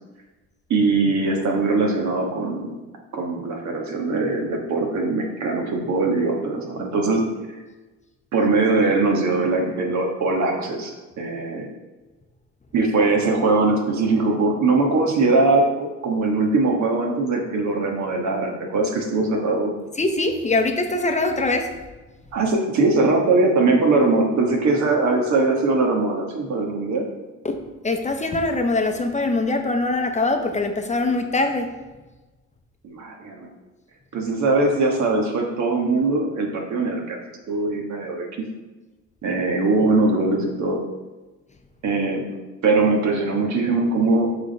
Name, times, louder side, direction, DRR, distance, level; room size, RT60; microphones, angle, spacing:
voice 1, 0.7-2.8 3.1-7.3 8.3-11.7 12.7-19.9 22.3-27.1 32.8-33.5 34.1-37.2 37.5-38.3 39.2-40.9 41.8-42.3 42.6-44.4, right 3 dB, 65° right, 2 dB, 1.4 m, -21 dB
voice 2, 20.0-21.8 27.4-31.7, left 2 dB, 25° left, 5 dB, 0.7 m, -23 dB
6.4 x 3.6 x 5.2 m, 1.2 s
cardioid pair, 90°, 30 cm